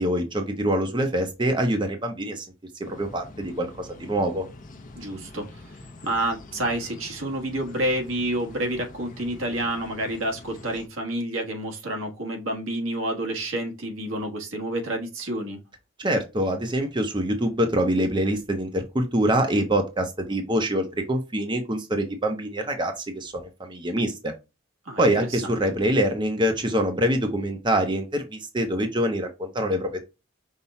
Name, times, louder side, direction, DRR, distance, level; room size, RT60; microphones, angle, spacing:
voice 1, 0.0-2.5 2.8-4.5 16.0-24.3 25.0-30.0, right 1 dB, 25° right, 0.7 m, -25 dB
sound 1, 2.8-10.9, left 2 dB, 40° left, 0.7 m, -45 dB
voice 2, 4.9-15.6 24.8-25.6, right 1 dB, 90° right, 1.4 m, -29 dB
5.5 x 2.3 x 4.1 m
head